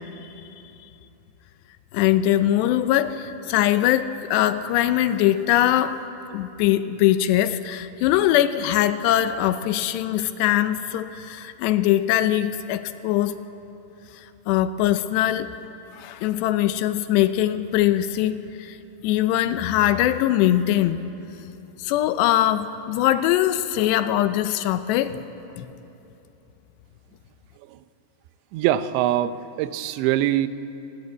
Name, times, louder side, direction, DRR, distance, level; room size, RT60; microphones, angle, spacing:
voice 1, 1.9-6.0 6.3-13.4 14.1-15.5 15.9-18.8 19.0-21.0 21.8-25.2 25.6-25.7, left 12 dB, 80° left, 11 dB, 2.8 m, -22 dB
voice 2, 28.5-30.5, right 12 dB, 85° right, 13 dB, 3.0 m, -23 dB
26.0 x 19.5 x 8.2 m, 3.0 s
omnidirectional pair, 5.1 m